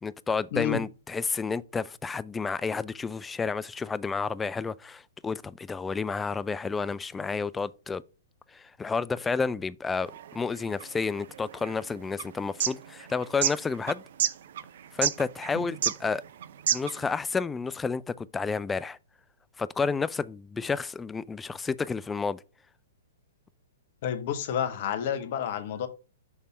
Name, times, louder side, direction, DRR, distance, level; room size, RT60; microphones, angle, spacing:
voice 1, 0.0-8.0 8.5-14.0 14.9-16.2 16.7-19.0 19.6-22.4, left 4 dB, 10° left, 0.3 m, -31 dB
voice 2, 0.5-0.8 24.0-25.9, left 9 dB, 50° left, 1.0 m, -30 dB
sound 1, 10.1-17.1, right 10 dB, 55° right, 0.5 m, -31 dB
6.4 x 3.5 x 5.4 m
figure-of-eight pair, 110°, 0 cm